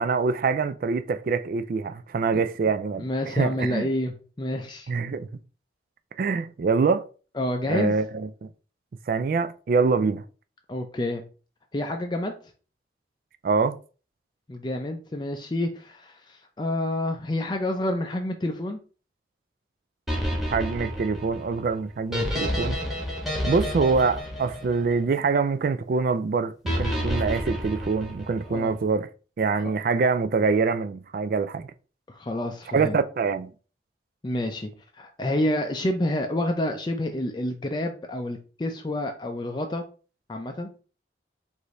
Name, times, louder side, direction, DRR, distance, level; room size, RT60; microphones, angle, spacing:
voice 1, 0.0-3.9 4.9-5.3 6.2-7.1 7.7-8.3 9.1-10.2 13.4-13.7 20.5-22.8 23.4-29.1 29.4-31.7 32.7-33.5, right 4 dB, 50° right, 0.3 m, -25 dB
voice 2, 3.0-4.1 4.4-4.9 7.3-7.9 10.7-11.2 11.7-12.4 14.5-18.8 28.5-28.7 32.1-33.0 34.2-34.7 35.0-39.8 40.3-40.7, left 1 dB, 25° left, 0.4 m, -28 dB
sound 1, 20.1-25.4 26.7-28.6, equal, ahead, 1.2 m, -30 dB
4.9 x 2.6 x 4.1 m
head